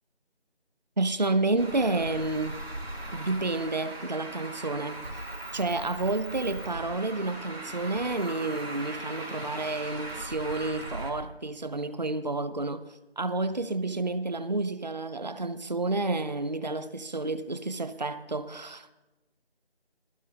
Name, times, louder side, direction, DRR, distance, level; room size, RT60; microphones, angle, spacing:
voice 1, 1.0-2.6 3.1-5.2 5.5-12.8 13.2-18.9, right 2 dB, 40° right, 0.6 m, -30 dB
Traffic noise roadway noise, 1.6-11.1, right 1 dB, 75° right, 4.0 m, -39 dB
20.5 x 12.0 x 2.9 m
figure-of-eight pair, 165°, 32 cm